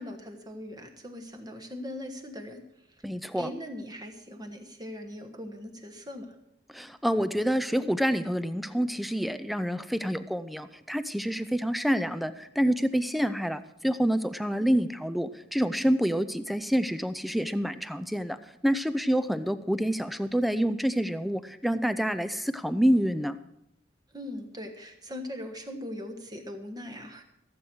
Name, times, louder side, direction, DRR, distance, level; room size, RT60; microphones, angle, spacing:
voice 1, 0.0-2.6 3.3-6.3 24.1-27.2, left 1 dB, 20° right, 4 dB, 1.3 m, -40 dB
voice 2, 3.0-3.5 6.7-23.4, equal, ahead, 12 dB, 0.4 m, -27 dB
15.0 x 7.9 x 6.1 m, 0.82 s
head